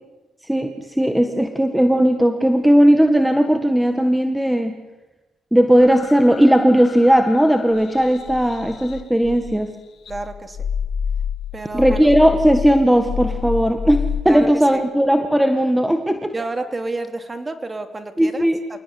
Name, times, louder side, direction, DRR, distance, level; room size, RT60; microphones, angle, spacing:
voice 1, 0.5-4.7 5.5-9.7 11.7-16.3 18.2-18.6, equal, 5° right, 7 dB, 1.8 m, -17 dB
sound 1, 5.8-9.7 10.1-14.2, left 7 dB, 60° left, 2.2 m, -29 dB
voice 2, 10.1-10.6 11.5-12.1 14.3-14.8 16.3-18.8, right 2 dB, 25° right, 8 dB, 3.1 m, -30 dB
27.5 x 18.0 x 9.7 m, 1.1 s
cardioid pair, 90°, 0 cm